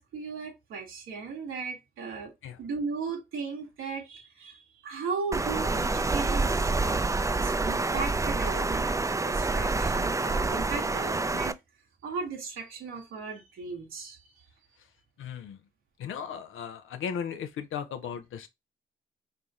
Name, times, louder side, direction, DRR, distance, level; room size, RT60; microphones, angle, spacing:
voice 1, 0.0-2.3 2.6-7.1 7.4-11.6 12.0-14.4, right 5 dB, 85° right, 1.2 m, -37 dB
Water, 5.3-11.5, right 3 dB, 15° right, 0.4 m, -27 dB
voice 2, 15.2-15.6 16.0-18.5, left 7 dB, 80° left, 0.6 m, -36 dB
3.2 x 2.4 x 4.0 m
supercardioid pair, 45°, 20 cm